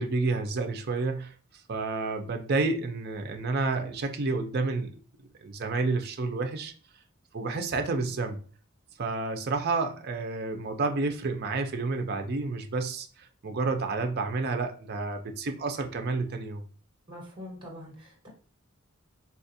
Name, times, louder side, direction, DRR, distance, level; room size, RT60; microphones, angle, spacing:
voice 1, 0.0-1.3 1.7-4.9 5.4-6.7 7.3-8.4 9.0-16.6, right 3 dB, 50° right, 6 dB, 0.5 m, -30 dB
voice 2, 17.1-18.3, left 1 dB, 25° right, -2 dB, 1.2 m, -44 dB
4.2 x 2.4 x 2.6 m, 0.41 s
head